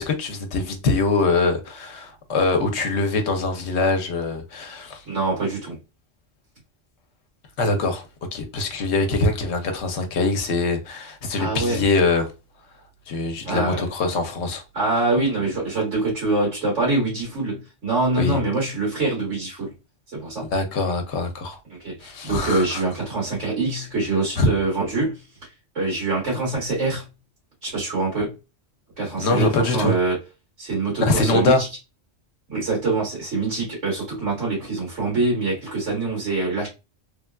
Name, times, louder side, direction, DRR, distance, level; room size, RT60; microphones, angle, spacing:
voice 1, 0.0-5.0 7.6-8.1 8.3-12.3 13.1-14.6 18.2-18.4 20.5-21.6 22.0-22.8 24.4-24.5 29.2-29.9 31.0-31.6, left 3 dB, 75° left, 0.9 m, -23 dB
voice 2, 5.0-5.8 11.4-11.8 13.4-13.9 14.7-19.7 20.1-20.5 21.6-27.1 27.6-28.3 29.0-30.2 30.6-31.7 32.5-36.7, right 2 dB, 80° right, 1.7 m, -24 dB
3.2 x 2.3 x 2.2 m
omnidirectional pair, 1.2 m